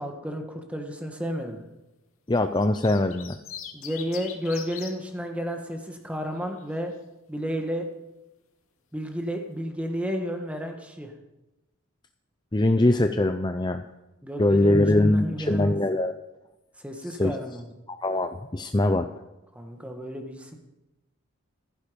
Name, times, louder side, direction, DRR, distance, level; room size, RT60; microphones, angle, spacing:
voice 1, 0.0-1.6 3.7-6.9 7.3-7.9 8.9-11.1 14.2-15.7 16.8-17.7 19.5-20.6, equal, 5° right, 3 dB, 1.8 m, -32 dB
sound 1, 2.3-4.9 6.2-6.6, left 9 dB, 80° left, 2.3 m, -40 dB
voice 2, 2.3-3.4 12.5-13.8 14.4-16.1 17.1-17.3 17.9-19.1, left 1 dB, 20° left, 8 dB, 0.5 m, -22 dB
15.5 x 15.0 x 5.3 m, 1.0 s
head